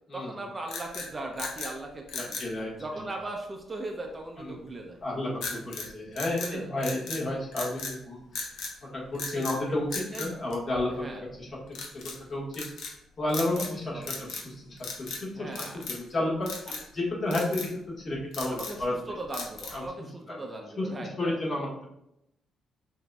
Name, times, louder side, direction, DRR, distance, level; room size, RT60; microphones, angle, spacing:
voice 1, 0.1-2.4 2.8-5.0 6.4-6.7 9.3-9.4 10.0-10.3 11.0-11.3 13.5-14.3 15.4-15.8 16.7-16.8 18.5-21.3, right 2 dB, 25° right, 2 dB, 0.6 m, -39 dB
sound 1, 0.6-1.7 2.1-2.5 5.4-5.9 6.2-7.2 7.5-8.0 8.3-8.7 9.1-9.6 9.9-11.1 11.7-12.2 12.5-12.9 13.3-13.8 14.0-14.5 14.8-15.2 15.5-16.1 16.5-16.9 17.3-17.7 18.1-18.8 19.3-19.9, left 4 dB, 75° left, 0.8 m, -37 dB
voice 2, 2.2-2.7 4.4-4.5 5.0-8.5 8.9-11.5 12.0-16.7 16.9-19.2 19.7-19.8 20.3-20.4 20.8-21.9, left 1 dB, 40° left, -3 dB, 1.5 m, -32 dB
5.8 x 2.6 x 2.3 m, 0.81 s
cardioid pair, 90°, 0 cm